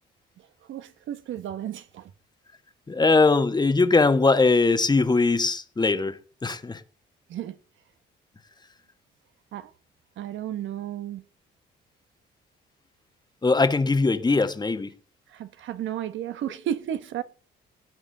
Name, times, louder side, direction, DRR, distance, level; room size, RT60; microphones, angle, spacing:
voice 1, 0.4-2.1 7.3-7.6 9.5-9.7 10.2-11.2 15.3-17.2, right 10 dB, 75° right, 1.1 m, -33 dB
voice 2, 2.9-6.8 13.4-14.9, left 3 dB, 20° left, 1.3 m, -21 dB
18.0 x 9.4 x 3.9 m
cardioid pair, 90°, 20 cm